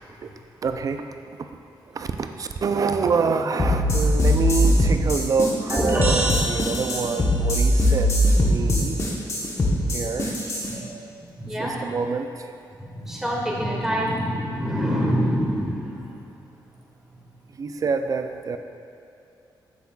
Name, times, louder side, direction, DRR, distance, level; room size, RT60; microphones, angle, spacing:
voice 1, 0.6-1.1 1.9-9.0 9.9-10.3 10.7-11.3 11.5-12.5 17.5-18.6, right 5 dB, 45° right, 7 dB, 0.4 m, -27 dB
sound 1, 3.6-10.7, equal, 35° left, 1.0 m, -21 dB
sound 2, 5.7-7.4, right 1 dB, 25° right, 1.4 m, -26 dB
voice 2, 11.3-11.9 12.8-16.1, equal, 5° right, -4 dB, 1.4 m, -26 dB
8.3 x 6.8 x 2.4 m, 2.7 s
cardioid pair, 110°, 8 cm